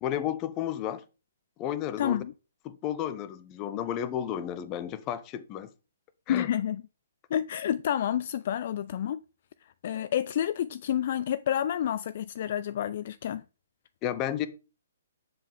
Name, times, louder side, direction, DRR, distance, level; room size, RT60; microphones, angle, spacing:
voice 1, 0.0-1.0 1.6-2.2 2.6-5.7 6.3-6.5 14.0-14.5, left 10 dB, 25° left, 0.8 m, -32 dB
voice 2, 2.0-2.3 6.3-6.8 7.3-9.2 9.8-13.4, left 10 dB, 50° left, 0.3 m, -29 dB
7.6 x 7.2 x 3.5 m
figure-of-eight pair, 130°, 0 cm